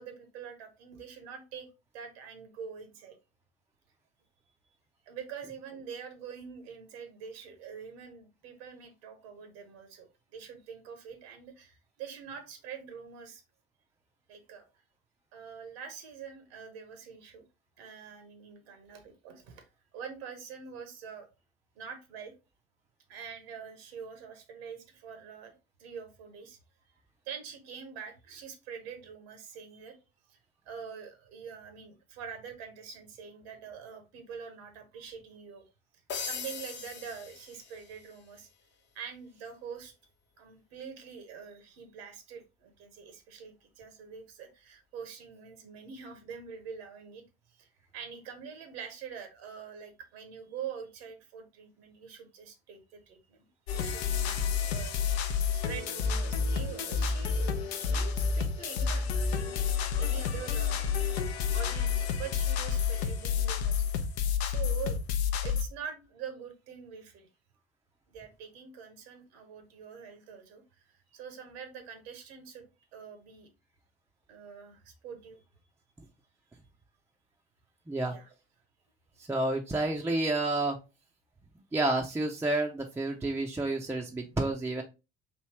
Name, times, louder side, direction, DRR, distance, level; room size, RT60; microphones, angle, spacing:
voice 1, 0.0-1.7 1.9-3.2 5.1-13.4 14.3-14.6 15.3-17.4 17.8-19.6 19.9-21.3 21.7-22.3 23.1-25.5 25.8-26.6 27.2-30.0 30.3-30.4 30.7-35.6 36.2-38.5 38.9-39.9 40.4-47.2 47.5-54.4 54.7-59.6 60.0-63.9 64.4-65.0 65.4-67.3 68.1-73.5 74.3-75.4 78.1-78.3, right 7 dB, 70° right, 7 dB, 0.8 m, -45 dB
sound 1, 36.1-38.2, left 6 dB, 35° left, 0.6 m, -40 dB
sound 2, 53.7-65.6, left 6 dB, 75° left, 0.5 m, -29 dB
voice 2, 79.2-80.8 81.7-84.8, right 2 dB, 10° right, 1 dB, 0.4 m, -30 dB
3.2 x 2.6 x 2.9 m, 0.28 s
hypercardioid pair, 60°, 32 cm